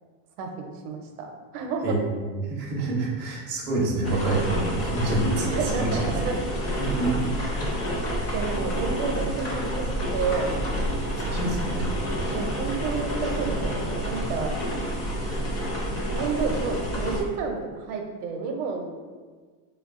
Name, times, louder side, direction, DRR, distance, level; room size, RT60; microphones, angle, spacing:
voice 1, 0.4-2.0 4.1-4.2 5.5-6.6 7.7-7.9 8.3-9.8 10.1-10.8 12.3-14.6 16.1-19.0, right 4 dB, 70° right, 3 dB, 0.6 m, -30 dB
voice 2, 2.3-5.9 7.0-7.4 10.8-10.9 11.2-11.9, right 2 dB, 25° right, -4 dB, 0.5 m, -27 dB
sound 1, 4.0-17.2, equal, 30° left, 0.6 m, -28 dB
3.4 x 2.3 x 3.5 m, 1.5 s
cardioid pair, 160°, 46 cm